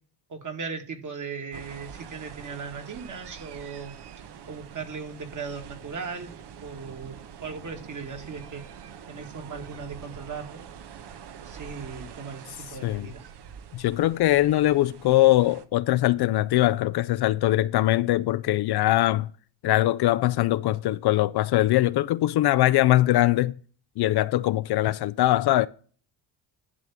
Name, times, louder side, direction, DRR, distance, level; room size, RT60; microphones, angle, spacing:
voice 1, 0.3-3.9 4.5-6.3 6.6-7.2 7.4-8.6 9.1-10.6 11.4-13.2, right 5 dB, 40° right, 2.1 m, -37 dB
sound 1, 1.5-15.7, right 8 dB, 60° right, 1.0 m, -45 dB
voice 2, 13.7-19.3 19.6-23.5 24.0-25.7, left 15 dB, 60° left, 0.5 m, -22 dB
11.0 x 3.7 x 7.1 m
cardioid pair, 100°, 45 cm